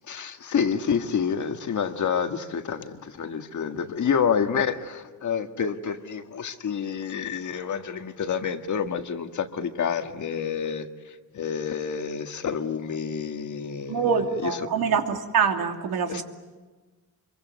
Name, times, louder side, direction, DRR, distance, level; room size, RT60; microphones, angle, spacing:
voice 1, 0.1-10.9 11.3-14.5 16.1-16.2, left 7 dB, 55° left, 7 dB, 1.8 m, -28 dB
voice 2, 13.9-16.2, right 6 dB, 80° right, 4 dB, 2.9 m, -25 dB
25.5 x 23.5 x 9.4 m, 1.3 s
cardioid pair, 135°, 36 cm